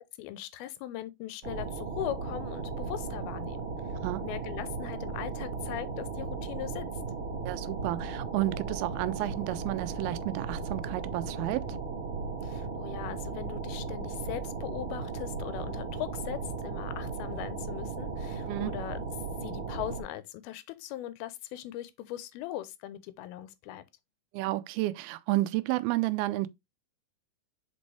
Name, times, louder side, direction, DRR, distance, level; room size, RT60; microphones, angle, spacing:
voice 1, 0.2-3.7 4.2-6.9 12.4-19.0 19.4-23.8, left 13 dB, 85° left, 2.6 m, -39 dB
sound 1, 1.4-20.0, right 4 dB, 55° right, 1.5 m, -36 dB
voice 2, 7.5-11.8 18.5-18.7 24.3-26.5, right 17 dB, 85° right, 2.4 m, -31 dB
6.1 x 5.3 x 3.2 m
omnidirectional pair, 4.3 m